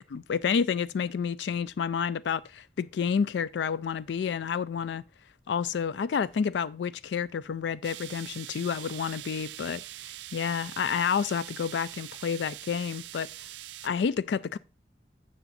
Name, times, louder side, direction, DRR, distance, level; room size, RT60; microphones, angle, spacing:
voice 1, 0.1-5.0 5.5-9.8 10.3-13.3 13.8-14.6, left 6 dB, 85° left, 0.4 m, -29 dB
sound 1, 7.8-13.9, right 15 dB, 80° right, 0.3 m, -43 dB
7.2 x 7.0 x 3.9 m
head